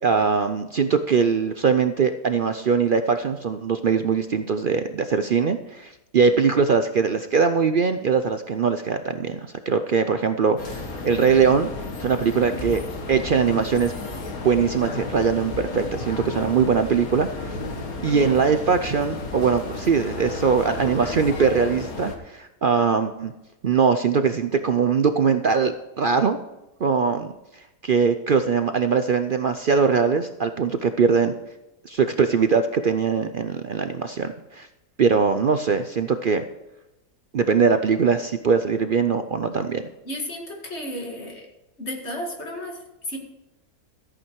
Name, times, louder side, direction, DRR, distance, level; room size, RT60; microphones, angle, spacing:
voice 1, 0.0-9.4 9.7-11.7 12.0-12.8 13.1-13.9 14.4-17.6 18.0-23.3 23.6-26.4 26.8-27.3 27.8-31.3 31.8-34.7 35.0-36.4 37.3-39.8, right 5 dB, 60° right, 8 dB, 0.5 m, -21 dB
sound 1, 10.6-22.2, left 3 dB, 70° left, 1.9 m, -33 dB
voice 2, 40.0-41.5 41.8-43.2, left 1 dB, 45° left, 1 dB, 2.4 m, -33 dB
14.0 x 8.8 x 4.6 m, 0.95 s
omnidirectional pair, 1.6 m